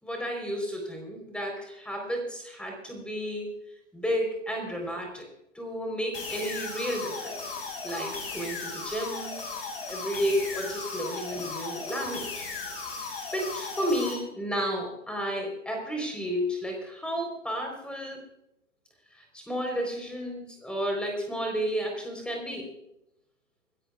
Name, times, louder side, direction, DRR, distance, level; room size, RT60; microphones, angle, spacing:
voice 1, 0.0-3.6 3.9-5.3 5.5-9.4 9.9-12.5 13.3-18.2 19.1-22.7, equal, 5° left, 1 dB, 4.1 m, -32 dB
sound 1, 6.1-14.1, left 4 dB, 50° left, 5.7 m, -36 dB
26.5 x 13.0 x 2.5 m, 0.84 s
figure-of-eight pair, 120°, 38 cm